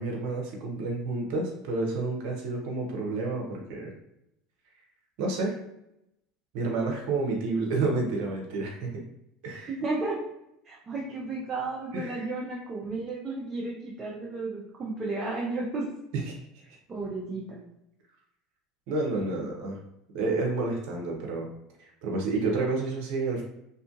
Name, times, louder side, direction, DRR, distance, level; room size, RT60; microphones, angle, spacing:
voice 1, 0.0-3.9 5.2-5.5 6.5-9.0 9.4-9.7 11.9-12.3 16.1-16.4 18.9-19.8 20.1-21.5 21.8-23.4, right 3 dB, 65° right, 0 dB, 0.7 m, -30 dB
voice 2, 9.7-10.2 10.6-15.8 16.9-17.6, right 3 dB, 30° right, -4 dB, 0.6 m, -33 dB
2.7 x 2.5 x 2.5 m, 0.82 s
hypercardioid pair, 80°, 0 cm